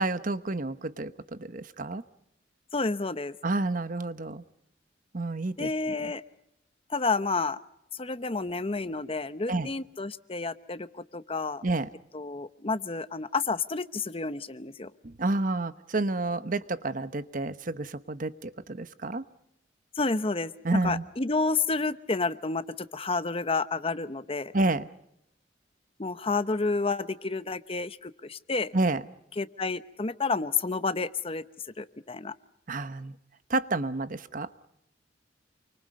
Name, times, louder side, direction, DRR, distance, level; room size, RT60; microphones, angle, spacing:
voice 1, 0.0-2.0 3.4-4.4 5.1-5.7 9.5-9.7 11.6-11.9 15.0-19.2 20.6-21.0 24.5-24.9 28.7-29.0 32.7-33.1 33.5-34.5, right 2 dB, 45° right, 12 dB, 1.0 m, -29 dB
voice 2, 2.7-3.4 5.6-6.2 6.9-7.6 7.9-11.6 12.1-14.9 19.9-24.5 26.0-28.7 29.4-31.4 31.8-32.3, left 3 dB, 30° left, 13 dB, 0.8 m, -30 dB
29.0 x 24.5 x 5.4 m, 0.79 s
head